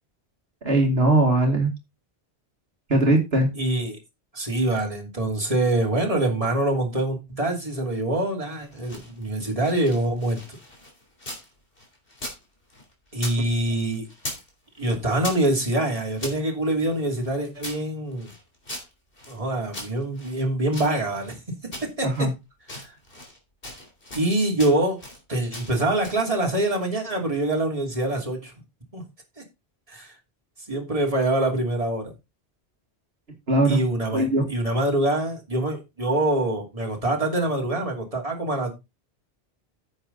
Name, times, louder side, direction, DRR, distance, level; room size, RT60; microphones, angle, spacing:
voice 1, 0.6-1.7 2.9-3.5 22.0-22.3 33.5-33.8 34.1-34.4, right 2 dB, 70° right, 2.3 m, -20 dB
voice 2, 3.5-4.0 4.3-10.6 13.1-14.1 14.8-18.3 19.3-21.4 21.8-22.3 22.7-22.9 24.1-25.0 25.3-28.5 28.9-29.0 29.9-30.1 30.7-32.1 33.6-38.7, right 1 dB, 35° right, 2.9 m, -25 dB
sound 1, 8.6-11.5 11.8-13.4 13.7-14.5 14.8-16.4 16.9-19.4 19.7-21.4 21.7-22.3 22.6-23.4 23.6-24.3 24.6-25.2 25.5-26.3, left 1 dB, 60° left, 3.9 m, -39 dB
9.9 x 7.7 x 4.0 m
omnidirectional pair, 1.1 m